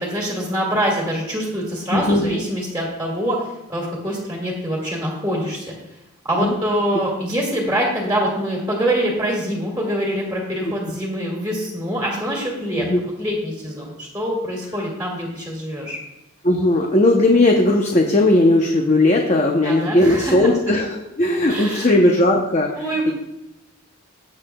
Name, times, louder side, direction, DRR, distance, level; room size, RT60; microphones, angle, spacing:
voice 1, 0.0-5.7 6.2-12.9 13.2-16.0 19.6-20.4 21.5-21.9 22.7-23.1, equal, 10° right, -3 dB, 2.1 m, -24 dB
voice 2, 1.9-2.3 6.4-6.5 12.8-13.0 16.4-22.8, left 1 dB, 35° left, 1 dB, 0.8 m, -17 dB
16.0 x 7.7 x 2.3 m, 0.93 s
head